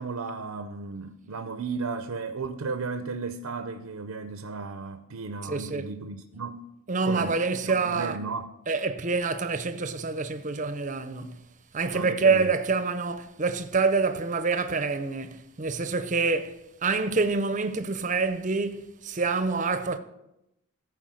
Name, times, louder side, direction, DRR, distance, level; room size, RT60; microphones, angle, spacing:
voice 1, 0.0-6.6 7.0-7.4 7.6-8.5 11.9-12.5, right 4 dB, 80° right, 0.6 m, -34 dB
voice 2, 5.5-5.9 6.9-8.2 8.7-11.4 11.7-20.0, right 4 dB, 35° right, 0.6 m, -27 dB
14.5 x 4.8 x 6.3 m
head